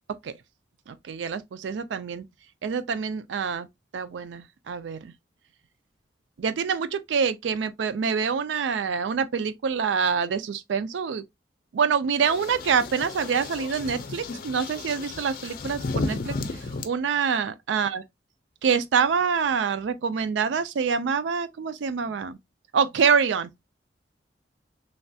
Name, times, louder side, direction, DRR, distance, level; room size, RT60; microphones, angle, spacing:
voice 1, 0.9-2.2 2.6-3.7 3.9-5.1 6.4-11.2 11.7-16.3 16.8-18.0 18.6-22.4 22.7-23.5, right 6 dB, 90° right, 0.4 m, -26 dB
sound 1, 12.2-16.9, left 3 dB, 55° left, 0.5 m, -33 dB
3.2 x 2.6 x 2.2 m
head